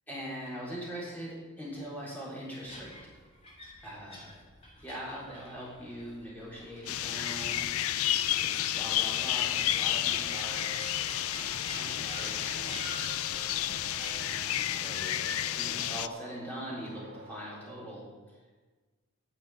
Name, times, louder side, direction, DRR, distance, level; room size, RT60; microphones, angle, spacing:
voice 1, 0.1-2.9 3.8-4.4 4.8-7.6 8.3-10.8 11.3-13.1 14.2-15.2 15.5-18.0 18.3-18.4, equal, 5° left, -6 dB, 3.8 m, -42 dB
sound 1, 2.7-14.1, left 1 dB, 25° left, 2.9 m, -48 dB
sound 2, 6.9-16.1, left 12 dB, 70° left, 0.4 m, -31 dB
sound 3, 9.9-17.5, right 2 dB, 45° right, 3.5 m, -49 dB
9.8 x 6.7 x 9.0 m, 1.3 s
head